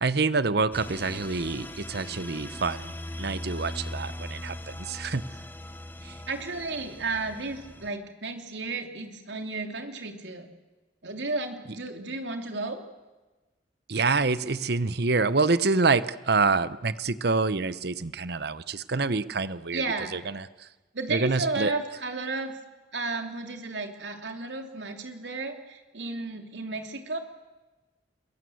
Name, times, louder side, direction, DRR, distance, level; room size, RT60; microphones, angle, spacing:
voice 1, 0.0-5.2 6.0-6.1 13.9-19.8 20.1-20.7 21.1-21.7, right 4 dB, 65° right, 15 dB, 1.0 m, -27 dB
sound 1, 0.7-7.9, left 1 dB, 10° left, 1.0 m, -40 dB
voice 2, 6.3-10.5 11.0-12.8 19.7-20.1 20.9-22.5 22.9-27.2, right 3 dB, 90° right, 5 dB, 3.1 m, -33 dB
28.5 x 22.5 x 7.9 m, 1.2 s
head